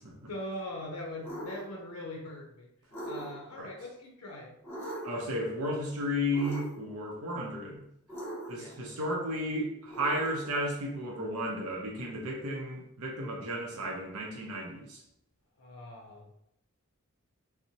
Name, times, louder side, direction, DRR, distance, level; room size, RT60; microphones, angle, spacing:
voice 1, 0.3-2.7 3.0-4.6 8.6-9.0 15.6-16.3, left 1 dB, 80° left, -1 dB, 0.5 m, -41 dB
sound 1, 1.2-1.6 2.9-3.6 4.6-5.3 6.3-6.9 8.1-8.8 9.9-10.5, right 1 dB, 10° left, 0.9 m, -40 dB
voice 2, 5.0-7.8 8.5-15.0, equal, 85° right, -2 dB, 0.6 m, -33 dB
2.7 x 2.0 x 2.7 m, 0.79 s
head